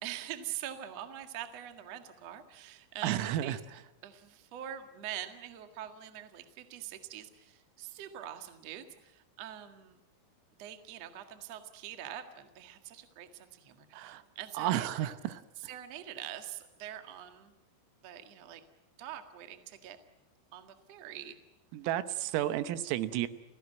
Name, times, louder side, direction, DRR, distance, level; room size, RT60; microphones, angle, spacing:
voice 1, 0.0-3.6 4.0-10.0 10.6-15.1 15.6-17.5 18.0-18.6 19.0-20.0 20.5-21.4, right 11 dB, 55° right, 7 dB, 1.8 m, -44 dB
voice 2, 3.0-3.6 13.9-14.2 14.6-15.4 21.7-23.3, right 12 dB, 85° right, 12 dB, 3.8 m, -32 dB
30.0 x 17.0 x 9.1 m, 0.92 s
omnidirectional pair, 5.9 m